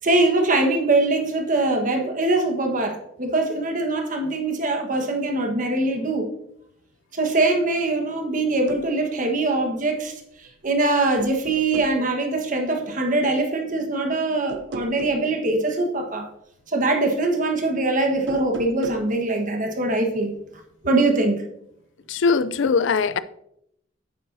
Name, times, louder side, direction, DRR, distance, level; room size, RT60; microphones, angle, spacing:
voice 1, 0.0-6.3 7.1-10.1 10.4-16.3 16.7-20.3 20.8-21.4, right 2 dB, 45° right, 1.3 m, -22 dB
sound 1, 8.5-8.9 10.4-10.8 11.2-12.0 14.5-15.3 18.1-19.1, right 3 dB, 70° right, 0.6 m, -36 dB
voice 2, 22.1-23.2, left 5 dB, 75° left, 0.4 m, -21 dB
9.4 x 8.5 x 2.7 m
head